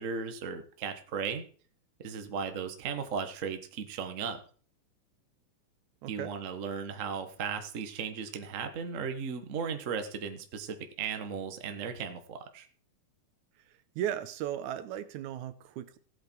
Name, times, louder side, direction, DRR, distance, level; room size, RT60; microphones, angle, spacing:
voice 1, 0.0-1.4 2.0-4.4 6.1-12.7, right 6 dB, 55° right, 0.8 m, -36 dB
voice 2, 14.0-16.0, right 11 dB, 80° right, 2.1 m, -36 dB
15.5 x 8.3 x 4.6 m
omnidirectional pair, 3.6 m